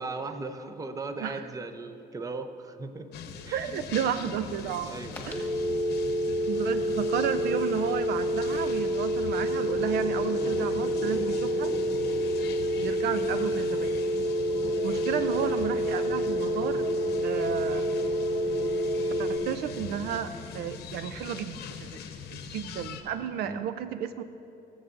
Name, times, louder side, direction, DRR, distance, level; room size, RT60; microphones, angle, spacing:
voice 1, 0.0-3.1 3.4-3.7 4.8-5.4 14.6-14.8 23.4-23.6, right 3 dB, 20° right, 8 dB, 0.6 m, -38 dB
sound 1, 3.1-23.0, left 6 dB, 75° left, 0.9 m, -42 dB
voice 2, 3.5-4.9 5.3-5.5 6.5-11.7 12.8-14.0 14.8-16.9 17.2-17.9 19.2-21.6 22.3-24.2, right 9 dB, 75° right, 11 dB, 0.4 m, -32 dB
sound 2, 5.2-19.4, equal, 10° left, 1.4 m, -28 dB
sound 3, 9.6-20.8, left 3 dB, 25° left, 0.9 m, -41 dB
20.0 x 7.2 x 2.5 m, 2.8 s
cardioid pair, 110°, 17 cm